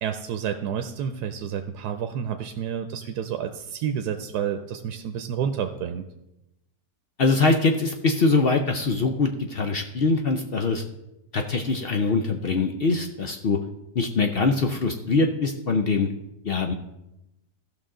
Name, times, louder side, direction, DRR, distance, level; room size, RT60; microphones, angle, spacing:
voice 1, 0.0-6.0, right 8 dB, 90° right, 7 dB, 1.2 m, -30 dB
voice 2, 7.2-10.8 11.3-13.6 13.9-16.1 16.4-16.7, left 3 dB, 60° left, 5 dB, 0.6 m, -23 dB
15.0 x 5.9 x 3.7 m, 0.91 s
omnidirectional pair, 1.7 m